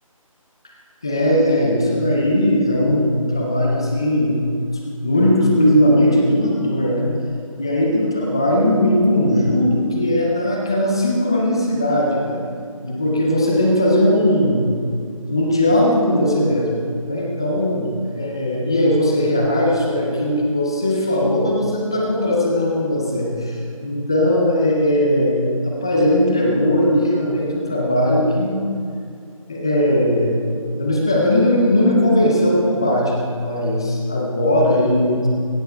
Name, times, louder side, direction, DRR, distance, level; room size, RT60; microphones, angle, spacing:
voice 1, 1.0-4.4 5.0-7.1 7.6-12.5 12.8-14.7 15.3-16.7 17.1-28.7 29.5-35.3, left 1 dB, 10° left, -1 dB, 0.4 m, -18 dB
16.5 x 7.6 x 4.3 m, 2.3 s
figure-of-eight pair, 165°, 18 cm